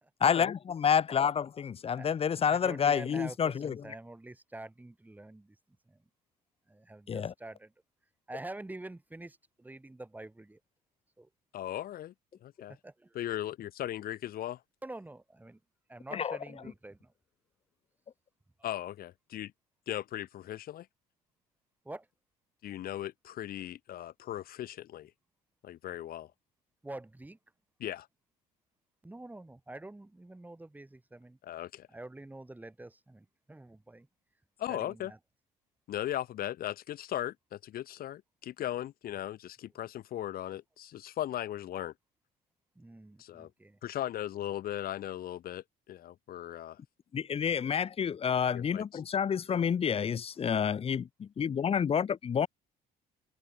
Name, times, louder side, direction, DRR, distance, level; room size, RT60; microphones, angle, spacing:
voice 1, 0.2-3.8 7.1-7.3 16.1-16.4 47.1-52.5, left 7 dB, 35° left, 0.9 m, -29 dB
voice 2, 2.5-5.5 5.9-6.0 6.7-7.7 8.3-10.6 11.2-11.3 12.7-13.2 14.8-15.6 15.9-17.1 21.8-22.1 26.8-27.4 29.0-31.4 31.9-34.1 34.7-35.2 42.8-43.8, right 2 dB, 10° right, 4.6 m, -46 dB
voice 3, 11.5-12.1 12.4-12.8 13.1-14.6 18.6-19.5 19.9-20.9 22.6-25.1 25.6-26.3 27.8-28.1 31.4-31.9 34.6-35.1 35.9-41.9 43.2-43.5 43.8-46.8 48.5-48.8, left 12 dB, 60° left, 1.4 m, -38 dB
cardioid pair, 110°, 17 cm